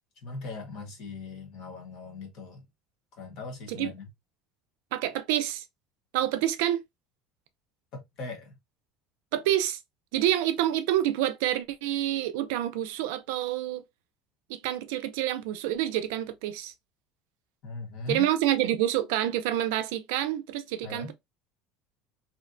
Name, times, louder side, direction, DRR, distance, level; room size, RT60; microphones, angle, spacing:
voice 1, 0.2-2.6 3.1-4.1 7.9-8.5 17.6-18.3 20.8-21.1, left 3 dB, 50° left, 1.0 m, -39 dB
voice 2, 4.9-5.6 6.1-6.8 9.3-9.8 10.1-13.8 14.5-16.7 18.1-21.1, right 12 dB, 85° right, 0.4 m, -27 dB
2.7 x 2.1 x 2.5 m
cardioid pair, 170°, 0 cm